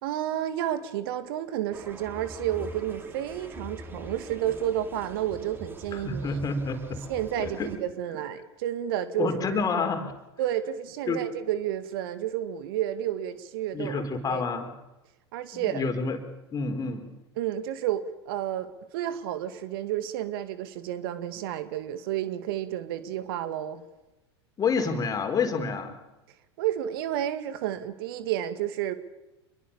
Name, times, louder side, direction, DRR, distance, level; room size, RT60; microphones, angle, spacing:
voice 1, 0.0-6.4 7.1-9.6 10.4-14.4 15.3-15.8 17.4-23.8 26.6-28.9, right 11 dB, 55° right, 12 dB, 2.1 m, -31 dB
sound 1, 1.7-7.8, right 1 dB, 15° right, 5.2 m, -43 dB
voice 2, 5.9-7.0 7.4-7.7 9.2-10.1 11.1-11.2 13.7-14.7 15.5-16.2 16.5-17.1 24.6-26.0, left 4 dB, 25° left, 7 dB, 4.6 m, -28 dB
27.5 x 22.5 x 7.1 m, 1.0 s
figure-of-eight pair, 85°, 14 cm